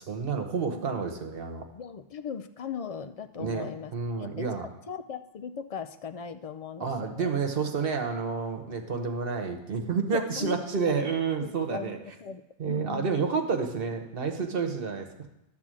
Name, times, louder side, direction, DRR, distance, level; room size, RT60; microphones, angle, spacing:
voice 1, 0.0-1.6 3.4-4.7 6.8-12.0 12.6-15.3, right 5 dB, 65° right, 5 dB, 1.2 m, -30 dB
voice 2, 0.7-1.1 1.7-4.5 4.9-7.3 10.1-11.9 12.2-13.2, left 6 dB, 50° left, 10 dB, 0.4 m, -39 dB
11.0 x 4.3 x 7.5 m, 0.90 s
omnidirectional pair, 1.0 m